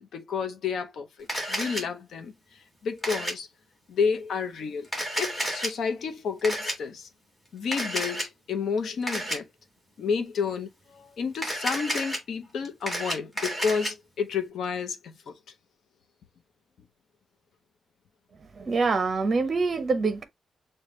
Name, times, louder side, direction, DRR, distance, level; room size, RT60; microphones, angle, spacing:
voice 1, 0.0-2.3 2.8-3.5 3.9-4.9 5.2-7.1 7.5-9.5 10.0-15.4, left 5 dB, 65° left, 0.7 m, -30 dB
Camera, 1.3-1.8 3.0-3.3 4.8-5.7 6.4-6.7 7.7-8.3 9.1-9.4 11.3-12.2 12.7-13.9, equal, 10° left, 1.7 m, -30 dB
voice 2, 18.5-20.2, right 4 dB, 30° right, 0.7 m, -25 dB
6.6 x 2.2 x 3.0 m
wide cardioid pair, 170°, 0 cm